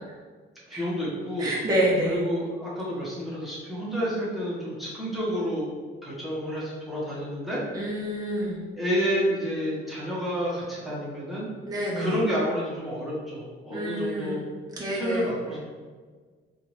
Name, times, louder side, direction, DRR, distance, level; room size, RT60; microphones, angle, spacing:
voice 1, 0.7-1.5 2.1-5.7 6.0-7.6 8.8-11.5 11.9-14.4 14.9-15.6, equal, ahead, -8 dB, 1.2 m, -29 dB
voice 2, 1.4-2.2 7.7-8.6 11.7-12.2 13.7-14.4 14.8-15.3, right 1 dB, 20° right, -5 dB, 0.9 m, -27 dB
3.6 x 2.6 x 3.1 m, 1.5 s
cardioid pair, 90°, 20 cm